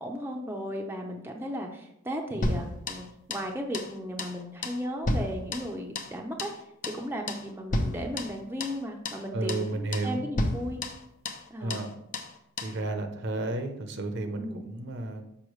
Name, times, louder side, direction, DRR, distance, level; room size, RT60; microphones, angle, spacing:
voice 1, 0.0-6.5 6.8-10.8 11.5-11.9 14.4-14.7, equal, 10° right, 1 dB, 0.6 m, -35 dB
voice 2, 2.3-2.7 9.3-10.3 11.6-11.9 12.6-15.2, right 2 dB, 55° right, 6 dB, 0.7 m, -32 dB
sound 1, 2.4-3.5 3.7-3.9 4.2-4.4 4.6-6.1 6.4-6.6 6.8-7.0 7.3-7.5 7.7-8.8 9.1-9.2 9.5-9.7 9.9-10.1 10.4-11.5 11.7-11.9 12.1-12.3 12.6-12.8, left 1 dB, 40° left, 0.6 m, -32 dB
6.3 x 5.6 x 3.1 m, 0.79 s
head